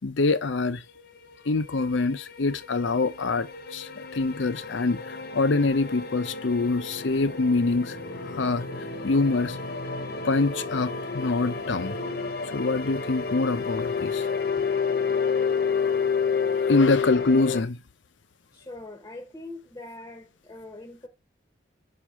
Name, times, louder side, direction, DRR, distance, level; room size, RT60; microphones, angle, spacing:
voice 1, 0.0-0.8 1.5-8.0 8.2-8.6 9.0-9.6 10.2-12.0 12.5-14.3 16.6-17.8, left 3 dB, 75° left, 0.6 m, -25 dB
sound 1, 1.5-17.6, left 5 dB, 50° left, 0.8 m, -30 dB
voice 2, 18.5-21.1, left 2 dB, 15° left, 0.8 m, -42 dB
5.7 x 4.7 x 3.5 m
head